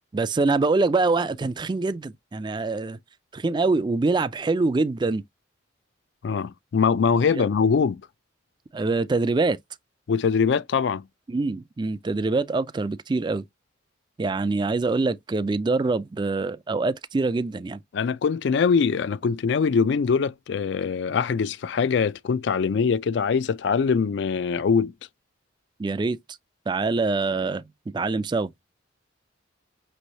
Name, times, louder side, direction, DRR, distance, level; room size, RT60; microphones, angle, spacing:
voice 1, 0.1-3.0 3.3-5.2 7.4-7.5 8.7-9.6 11.3-13.4 14.2-17.8 25.8-26.2 26.7-28.5, right 3 dB, 25° right, 0.3 m, -24 dB
voice 2, 6.2-8.0 10.1-11.1 17.9-24.9, left 5 dB, 60° left, 0.3 m, -23 dB
6.0 x 3.1 x 2.7 m
head